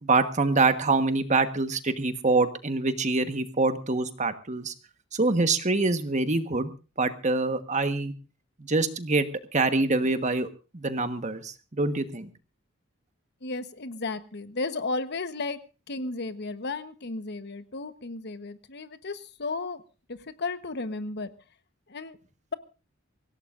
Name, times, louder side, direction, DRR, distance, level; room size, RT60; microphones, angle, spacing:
voice 1, 0.0-4.7 5.1-6.7 7.0-8.1 8.7-10.5 10.7-12.3, right 3 dB, 35° right, 9 dB, 1.4 m, -25 dB
voice 2, 13.4-15.6 15.9-19.8 20.1-21.3 21.9-22.2, left 3 dB, 55° left, 11 dB, 1.1 m, -34 dB
25.0 x 16.5 x 2.6 m, 0.33 s
head